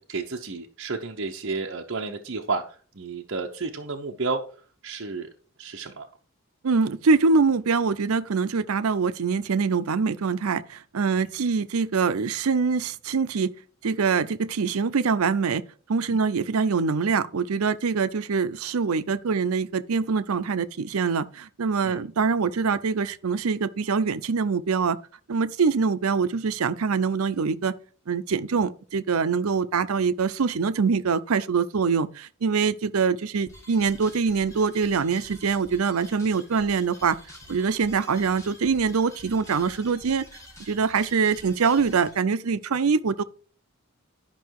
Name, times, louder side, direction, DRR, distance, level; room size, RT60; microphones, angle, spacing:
voice 1, 0.0-4.4 4.8-5.3 5.6-6.1 11.1-11.3 16.1-16.2 21.8-22.0, right 4 dB, 60° right, 0.8 m, -32 dB
voice 2, 6.6-13.5 13.8-15.6 15.9-25.0 25.3-27.7 28.1-37.2 37.5-40.3 40.7-43.2, right 5 dB, 90° right, 0.6 m, -24 dB
sound 1, 33.5-42.2, left 1 dB, 15° left, 2.7 m, -48 dB
11.5 x 5.6 x 4.7 m
head